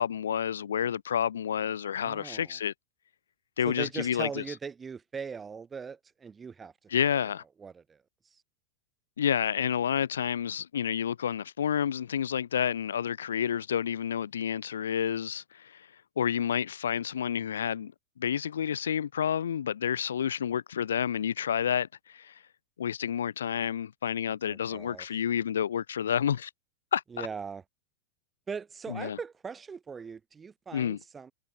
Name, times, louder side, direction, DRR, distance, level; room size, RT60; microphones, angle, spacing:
voice 1, 0.0-2.7 3.6-4.4 6.9-7.4 9.2-15.9 16.2-17.9 18.2-22.4 22.8-26.5 26.9-27.3 28.9-29.2 30.7-31.0, left 8 dB, 65° left, 0.5 m, -29 dB
voice 2, 2.0-2.6 3.6-6.7 7.6-8.0 24.5-25.1 27.1-27.6 28.5-31.3, right 5 dB, 15° right, 1.6 m, -40 dB
figure-of-eight pair, 90°, 0 cm